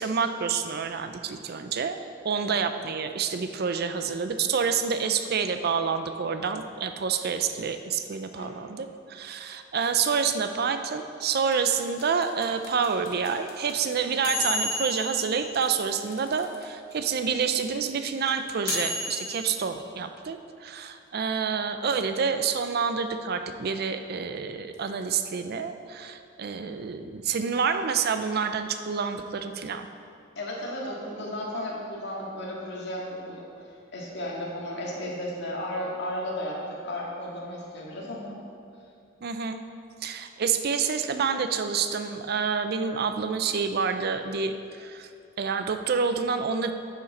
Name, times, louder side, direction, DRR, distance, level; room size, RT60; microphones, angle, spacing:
voice 1, 0.0-2.0 2.2-29.9 39.2-39.6 40.0-45.1 45.4-46.7, right 6 dB, 50° right, 8 dB, 0.5 m, -28 dB
voice 2, 8.4-8.7 30.4-33.7 33.9-38.4, left 1 dB, 60° left, -3 dB, 2.0 m, -34 dB
sound 1, 11.5-16.6 16.9-17.0 17.2-19.5, left 2 dB, 85° left, 1.9 m, -32 dB
10.0 x 8.3 x 4.2 m, 2.5 s
head